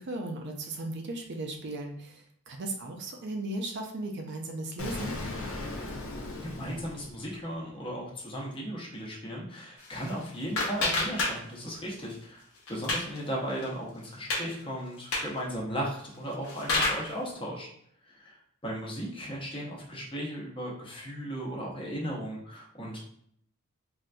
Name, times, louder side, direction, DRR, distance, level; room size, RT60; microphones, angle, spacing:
voice 1, 0.0-5.2, right 2 dB, 55° right, 3 dB, 0.5 m, -36 dB
Explosion, 4.8-7.7, left 2 dB, 70° left, 0.6 m, -38 dB
voice 2, 6.4-17.7 18.1-18.3 18.6-23.0, equal, 25° left, -3 dB, 0.8 m, -36 dB
sound 1, 9.8-11.8 12.1-13.2 13.6-13.7 14.0-14.5 15.0-15.4 16.1-17.1, left 2 dB, 90° left, 0.9 m, -30 dB
3.7 x 2.5 x 2.2 m, 0.67 s
head